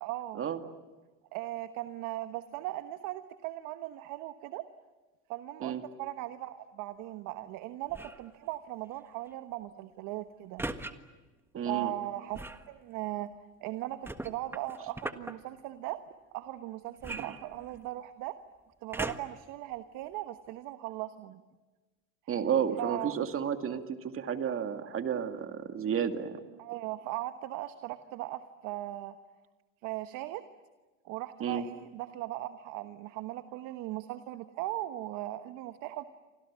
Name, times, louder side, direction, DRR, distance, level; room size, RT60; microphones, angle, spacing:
voice 1, 0.0-0.4 1.3-4.6 5.3-10.6 11.6-12.4 12.7-13.3 13.6-16.0 16.3-18.4 18.8-21.4 22.8-23.2 26.6-29.1 29.8-30.4 31.0-36.0, right 16 dB, 60° right, 10 dB, 1.3 m, -38 dB
sound 1, 7.9-8.3 10.6-10.9 12.3-12.7 14.0-15.3 17.0-18.0 18.9-19.5 20.1-20.2, right 2 dB, 5° right, 1.5 m, -39 dB
voice 2, 11.5-11.9 17.1-17.3 22.3-26.4 31.4-31.6, right 8 dB, 35° right, 7 dB, 2.3 m, -32 dB
30.0 x 25.5 x 7.5 m, 1.2 s
hypercardioid pair, 95°, 37 cm